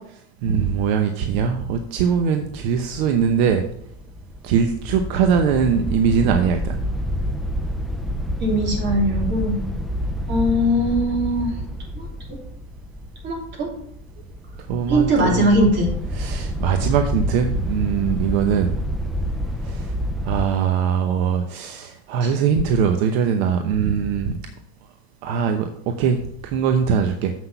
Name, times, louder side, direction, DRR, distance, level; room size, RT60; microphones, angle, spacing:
voice 1, 0.4-3.6 4.4-6.8 14.7-15.5 16.1-18.7 19.6-19.9 20.2-24.4 25.2-27.3, right 7 dB, 70° right, 6 dB, 0.9 m, -21 dB
sound 1, 2.5-20.5, equal, ahead, 0.4 m, -28 dB
voice 2, 8.4-9.6 10.3-11.5 11.9-12.4 13.2-13.7 14.9-15.9 22.2-22.3, equal, 35° right, -1 dB, 3.0 m, -21 dB
7.5 x 6.1 x 5.5 m, 0.68 s
supercardioid pair, 130°, 33 cm